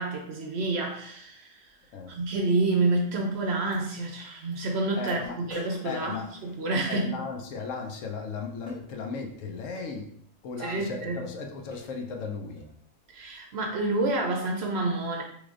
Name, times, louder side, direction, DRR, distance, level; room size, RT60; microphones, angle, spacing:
voice 1, 0.0-1.8 2.1-7.2 10.6-11.2 13.1-15.2, right 2 dB, 65° right, 2 dB, 0.7 m, -28 dB
sound 1, 2.7-2.8 3.7-3.8 4.5-4.6 5.1-7.0 8.7-8.9 9.8-10.0 10.7-10.9 11.3-11.4 11.7-12.0 12.6-12.8, left 1 dB, 90° left, 1.6 m, -48 dB
voice 2, 5.0-5.4 5.8-6.3 6.9-10.2 10.4-12.7, left 4 dB, 75° left, 3 dB, 1.0 m, -36 dB
3.7 x 3.2 x 2.4 m, 0.66 s
omnidirectional pair, 1.4 m